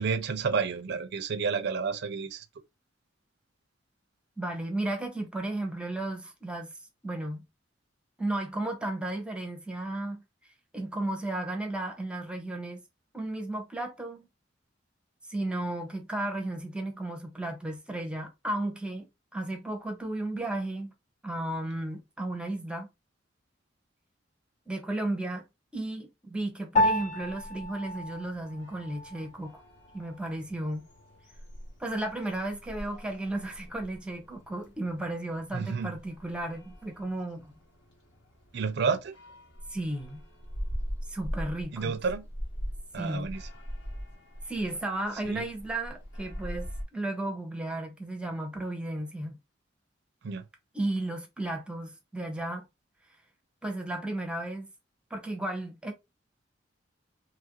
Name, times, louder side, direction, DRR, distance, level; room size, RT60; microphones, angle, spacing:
voice 1, 0.0-2.4 35.5-35.9 38.5-39.1 41.7-42.2 42.9-43.4 45.3-45.5 50.2-50.4, right 5 dB, 60° right, 0.4 m, -30 dB
voice 2, 4.4-6.7 7.0-7.4 8.2-12.8 13.1-14.3 15.3-19.1 19.3-20.9 21.2-22.9 24.7-25.4 25.7-29.6 29.9-30.8 31.8-37.5 39.7-40.2 41.1-42.0 43.0-43.3 44.5-49.4 50.7-52.7 53.6-54.7 55.1-55.9, right 1 dB, 5° right, 0.6 m, -34 dB
Piano, 26.8-36.4, left 1 dB, 40° left, 0.3 m, -35 dB
sound 1, 27.2-46.8, equal, 70° left, 1.1 m, -42 dB
2.9 x 2.4 x 2.9 m
head